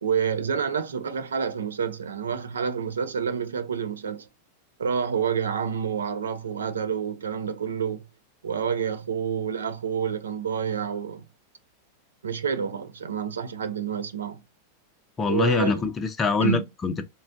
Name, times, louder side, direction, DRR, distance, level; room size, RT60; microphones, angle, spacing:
voice 1, 0.0-4.3 4.8-8.1 8.4-11.2 12.2-14.4 15.3-15.8 16.4-16.6, right 7 dB, 85° right, 0.5 m, -28 dB
voice 2, 15.2-17.0, left 4 dB, 25° left, 0.5 m, -24 dB
3.7 x 2.1 x 2.5 m
hypercardioid pair, 100°, 0 cm